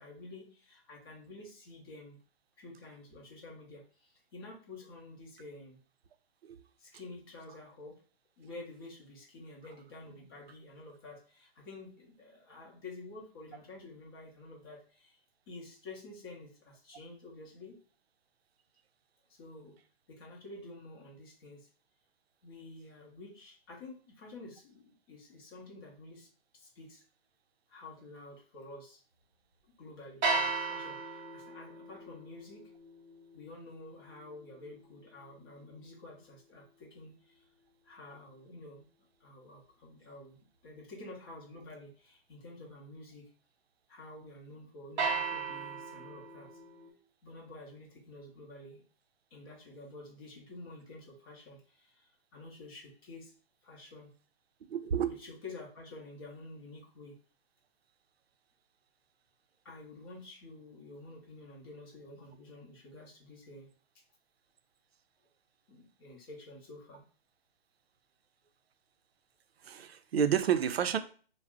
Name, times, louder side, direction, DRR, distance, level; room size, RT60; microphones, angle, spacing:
voice 1, 0.0-2.2 2.6-5.8 6.8-8.0 8.4-15.2 15.5-17.8 19.3-19.7 20.1-21.7 22.4-26.3 26.5-27.0 27.7-29.0 29.8-32.6 33.3-37.4 37.8-38.8 39.2-43.3 43.9-46.5 47.2-48.8 49.3-53.3 53.6-54.1 55.0-57.1 59.6-63.7 65.7-67.0, left 2 dB, 25° left, -2 dB, 0.6 m, -50 dB
sound 1, 30.2-36.4 45.0-46.9, right 4 dB, 50° right, 0.7 m, -37 dB
voice 2, 54.7-55.2 69.6-71.0, right 8 dB, 80° right, 10 dB, 0.5 m, -30 dB
2.4 x 2.0 x 3.4 m, 0.41 s
hypercardioid pair, 145°, 30 cm